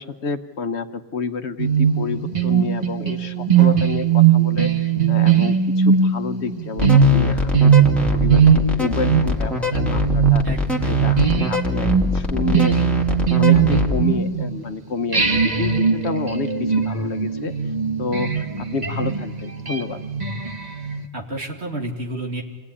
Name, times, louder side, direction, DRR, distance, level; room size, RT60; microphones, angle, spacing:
voice 1, 0.0-7.9 8.1-10.4 10.9-12.9 13.3-17.5 18.0-20.0, left 4 dB, 75° left, 9 dB, 1.3 m, -29 dB
sound 1, 1.6-14.7 15.1-21.0, right 7 dB, 40° right, 1.5 m, -19 dB
sound 2, 6.8-14.0, left 3 dB, ahead, 2.4 m, -23 dB
voice 2, 10.4-11.0 21.1-22.4, right 1 dB, 70° right, 0 dB, 3.0 m, -30 dB
27.5 x 18.5 x 9.9 m, 1.4 s
omnidirectional pair, 1.1 m